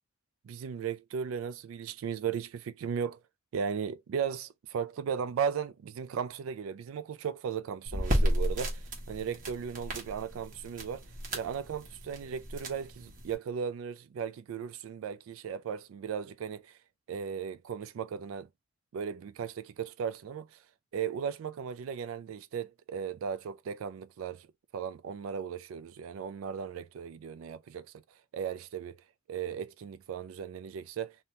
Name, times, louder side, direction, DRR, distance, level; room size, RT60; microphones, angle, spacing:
voice 1, 0.4-3.2 3.5-11.0 11.3-16.7 17.1-18.5 18.9-20.6 20.9-24.5 24.7-27.9 28.3-29.0 29.3-31.2, right 7 dB, 90° right, 0.3 m, -36 dB
sound 1, 7.8-13.3, equal, 40° right, 1.3 m, -33 dB
3.3 x 2.7 x 2.7 m
head